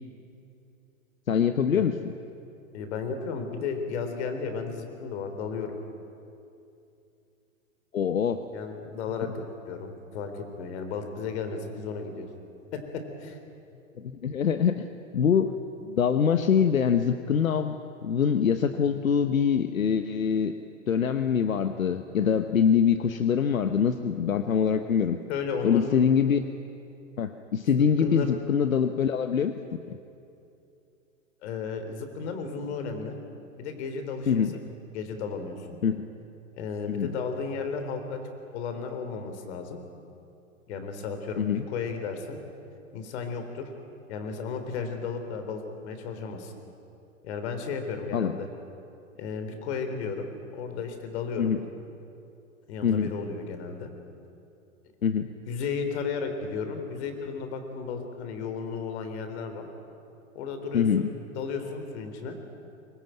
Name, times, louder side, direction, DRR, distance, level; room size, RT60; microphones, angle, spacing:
voice 1, 1.3-1.9 7.9-8.4 14.0-14.9 15.1-15.5 15.8-17.8 18.0-20.5 20.9-25.2 25.6-26.4 27.2-29.5 29.9-30.0 34.3-34.6 35.8-36.0 36.9-37.1 41.4-41.6 48.1-48.4 51.4-51.6 52.8-53.1 55.0-55.3 60.7-61.1, left 7 dB, 85° left, 9 dB, 1.1 m, -24 dB
voice 2, 2.7-5.8 8.5-12.3 12.7-13.4 25.3-26.0 27.8-28.4 31.4-33.2 33.6-34.4 34.9-35.8 36.5-38.2 38.5-39.8 40.7-42.4 42.9-43.7 44.1-46.5 47.2-48.5 49.2-51.5 52.7-53.9 55.5-59.7 60.4-61.1 61.4-62.4, left 5 dB, 55° left, 7 dB, 3.9 m, -34 dB
24.0 x 20.5 x 9.2 m, 2.6 s
hypercardioid pair, 110°, 40 cm